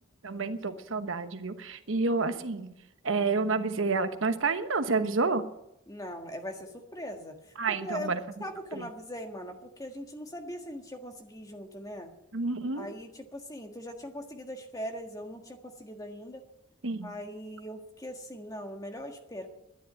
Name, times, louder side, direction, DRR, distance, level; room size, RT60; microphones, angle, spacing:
voice 1, 0.2-2.7 3.0-5.4 7.6-8.2 8.7-8.9 12.3-12.9 16.8-17.1, right 4 dB, 70° right, 9 dB, 1.0 m, -29 dB
voice 2, 5.9-7.4 7.8-8.1 8.4-12.1 12.7-16.4 17.0-19.5, equal, 15° left, 4 dB, 1.6 m, -40 dB
12.5 x 10.0 x 8.6 m, 0.83 s
head